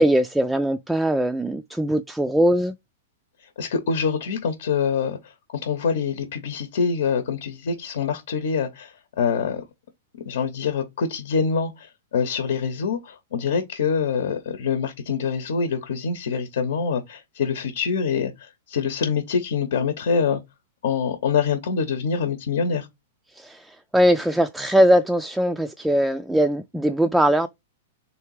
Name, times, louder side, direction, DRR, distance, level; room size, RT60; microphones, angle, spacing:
voice 1, 0.0-2.7 23.3-27.5, equal, 5° right, 0.4 m, -20 dB
voice 2, 3.4-9.6 10.2-20.4 20.8-22.9, left 6 dB, 70° left, 0.9 m, -25 dB
3.4 x 2.7 x 4.6 m
hypercardioid pair, 115°, 0 cm